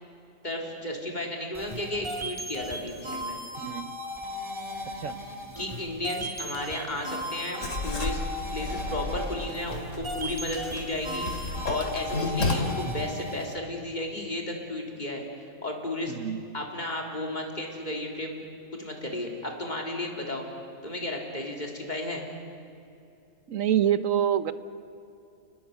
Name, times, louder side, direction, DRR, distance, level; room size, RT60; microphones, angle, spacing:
voice 1, 0.4-3.4 5.6-8.2 8.5-16.1 16.5-18.3 18.7-20.4 20.8-22.2, left 1 dB, 30° left, 1 dB, 3.7 m, -33 dB
sound 1, 1.5-13.5, equal, 20° right, 2.3 m, -37 dB
voice 2, 3.6-3.9 5.0-5.2 16.1-16.4 23.5-24.5, right 10 dB, 60° right, 13 dB, 1.3 m, -26 dB
Writing, 7.6-12.5, left 2 dB, 55° left, 2.8 m, -32 dB
30.0 x 20.0 x 8.3 m, 2.6 s
omnidirectional pair, 1.6 m